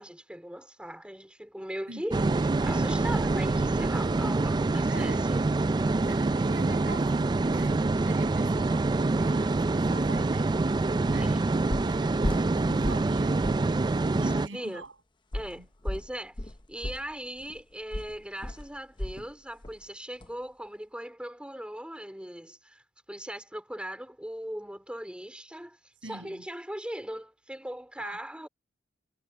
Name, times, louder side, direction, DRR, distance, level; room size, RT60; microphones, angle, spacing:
voice 1, 0.0-2.3 2.6-5.4 11.1-11.4 14.1-14.8 15.3-22.8 23.1-28.5, equal, 5° right, 4.4 m, -39 dB
voice 2, 1.9-2.4 4.9-5.3 5.8-10.7 11.1-13.4 14.0-14.9 15.6-15.7 26.0-26.4 28.0-28.2, right 2 dB, 75° right, 7.5 m, -44 dB
sound 1, 2.1-14.5, right 3 dB, 25° right, 0.3 m, -26 dB
sound 2, 10.6-10.7 11.1-11.4 11.7-13.2 13.4-13.7 14.1-14.2 15.3-19.3 19.6-19.8 20.2-20.3, left 1 dB, 25° left, 0.9 m, -35 dB
head